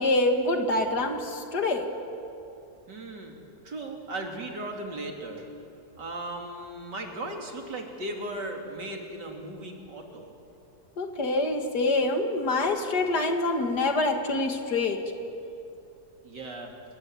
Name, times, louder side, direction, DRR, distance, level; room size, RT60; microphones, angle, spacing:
voice 1, 0.0-1.9 11.0-15.0, left 2 dB, 70° left, 4 dB, 2.6 m, -26 dB
voice 2, 2.9-3.4 3.6-5.5 6.0-10.3 16.2-16.7, right 1 dB, 85° right, 2 dB, 3.8 m, -37 dB
28.5 x 21.5 x 9.5 m, 2.8 s
omnidirectional pair, 1.8 m